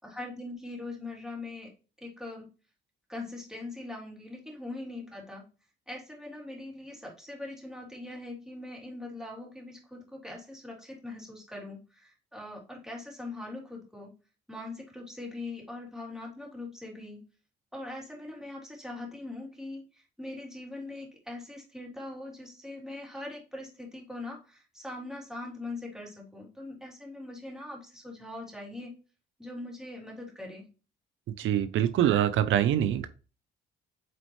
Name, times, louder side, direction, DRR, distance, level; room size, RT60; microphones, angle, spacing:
voice 1, 0.0-1.7 2.0-2.5 3.1-5.4 5.9-14.1 14.5-17.2 17.7-28.9 29.4-30.7, left 2 dB, 5° right, -2 dB, 3.3 m, -41 dB
voice 2, 31.4-33.1, right 11 dB, 80° right, 12 dB, 0.7 m, -24 dB
8.3 x 4.3 x 3.2 m, 0.32 s
cardioid pair, 90°, 20 cm